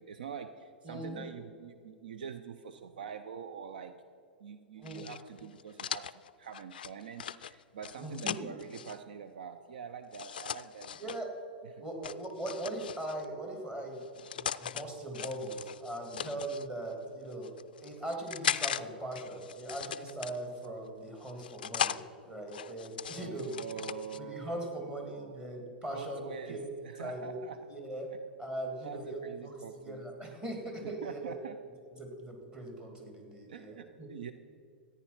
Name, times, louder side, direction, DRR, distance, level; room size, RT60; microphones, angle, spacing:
voice 1, 0.0-3.9 4.4-11.1 11.7-11.8 16.1-16.4 23.1-25.4 25.9-27.7 28.8-30.0 30.8-31.6 33.5-34.3, right 7 dB, 60° right, 9 dB, 0.6 m, -45 dB
voice 2, 0.8-1.2 4.8-5.0 8.0-8.5 11.0-11.3 11.8-14.0 14.3-17.5 17.8-23.5 24.1-26.7 27.0-27.4 27.7-28.1 28.4-31.4 32.0-34.1, right 1 dB, 15° right, 1 dB, 2.4 m, -40 dB
sound 1, 4.8-9.0 10.1-11.2 12.0-13.3 14.0-14.8 15.1-16.7 17.3-18.8 19.1-20.7 21.2-22.0 22.5-24.2, left 8 dB, 60° left, 0.3 m, -38 dB
14.0 x 9.5 x 5.7 m, 2.3 s
figure-of-eight pair, 100°, 5 cm